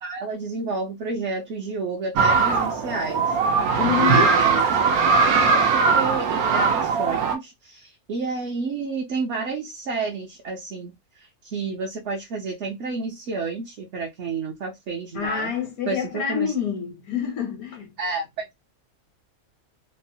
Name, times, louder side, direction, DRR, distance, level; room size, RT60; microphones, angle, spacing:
voice 1, 0.0-3.4 4.0-4.6 5.5-15.5 15.9-16.5 18.0-18.5, right 4 dB, 60° right, 0.9 m, -30 dB
sound 1, 2.2-7.4, right 5 dB, 80° right, 1.1 m, -20 dB
voice 2, 3.8-4.3 15.1-17.9, left 8 dB, 75° left, 1.1 m, -27 dB
3.1 x 2.0 x 2.6 m
omnidirectional pair, 1.5 m